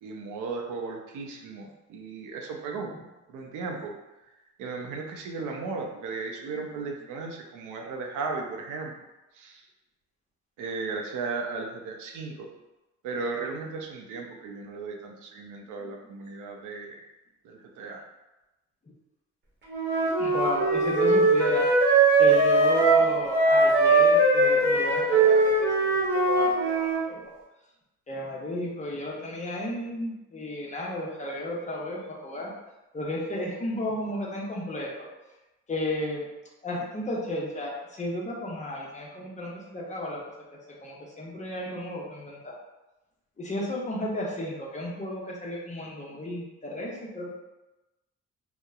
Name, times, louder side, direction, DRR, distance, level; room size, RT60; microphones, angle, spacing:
voice 1, 0.0-2.9 3.3-3.9 4.6-8.9 9.3-9.6 10.6-12.5 13.0-17.0 17.4-18.0, right 4 dB, 85° right, 1 dB, 0.5 m, -35 dB
Wind instrument woodwind instrument, 19.7-27.0, right 2 dB, 35° right, 0.9 m, -21 dB
voice 2, 20.2-21.7 22.2-27.3 28.1-32.5 32.9-35.1 35.7-36.3 36.6-40.2 40.7-42.5 43.4-47.3, left 1 dB, 25° left, -3 dB, 0.6 m, -33 dB
2.8 x 2.0 x 2.3 m, 1.0 s
cardioid pair, 90°, 30 cm